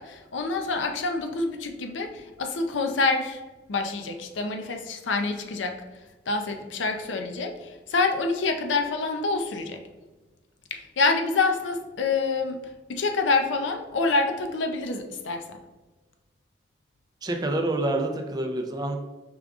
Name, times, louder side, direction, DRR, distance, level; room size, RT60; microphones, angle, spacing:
voice 1, 0.0-3.4 3.7-5.8 6.3-9.8 10.7-12.6 12.9-15.4, left 3 dB, 90° left, 5 dB, 0.5 m, -27 dB
voice 2, 17.2-19.0, right 1 dB, 20° right, 3 dB, 0.4 m, -27 dB
5.0 x 2.4 x 3.5 m, 1.2 s
head